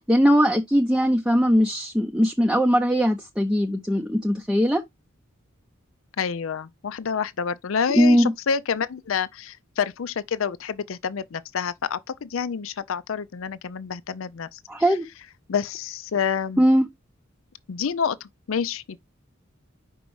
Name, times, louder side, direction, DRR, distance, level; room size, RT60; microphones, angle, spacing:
voice 1, 0.0-4.8 7.9-8.3 14.7-15.0 16.6-16.9, equal, 5° right, 0.6 m, -20 dB
voice 2, 6.2-14.6 15.5-16.6 17.7-19.0, left 6 dB, 75° left, 0.5 m, -28 dB
5.3 x 4.4 x 4.6 m
head